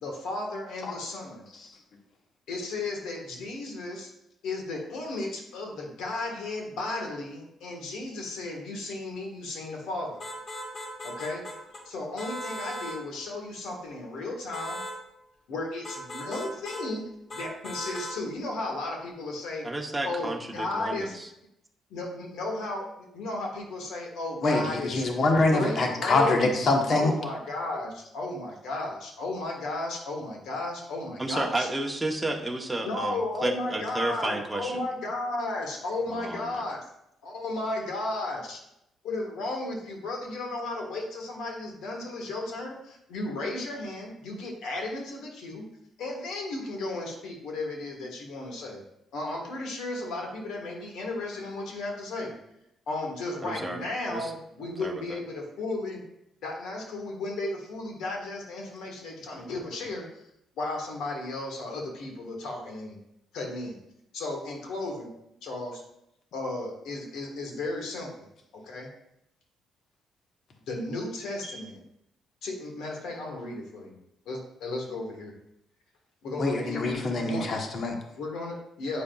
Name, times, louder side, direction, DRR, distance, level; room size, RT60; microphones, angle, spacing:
voice 1, 0.0-1.4 2.5-4.1 4.4-10.2 11.0-11.5 11.8-14.8 15.5-19.7 20.0-21.2 21.9-25.1 25.5-26.5 26.9-31.7 32.8-36.8 37.2-38.6 39.0-45.6 46.0-48.8 49.1-52.3 52.9-56.0 56.4-60.2 60.6-63.0 63.3-63.8 64.1-65.1 65.4-65.8 66.3-68.2 68.5-68.9 70.6-71.8 72.4-74.0 74.2-75.3 76.2-77.5 78.1-79.0, left 2 dB, 80° left, 1 dB, 1.4 m, -34 dB
sound 1, 10.2-11.8 12.2-13.0 14.5-15.0 15.8-16.9 17.3-18.2, equal, 35° left, 1.5 m, -38 dB
voice 2, 19.6-21.3 31.2-34.7 36.1-36.6 53.4-53.8 54.1-54.3 54.8-55.2, right 2 dB, 10° right, 0 dB, 0.9 m, -32 dB
voice 3, 24.4-27.1 76.4-78.0, left 2 dB, 55° left, 2 dB, 1.0 m, -24 dB
8.5 x 5.0 x 2.3 m, 0.83 s
cardioid pair, 90°, 0 cm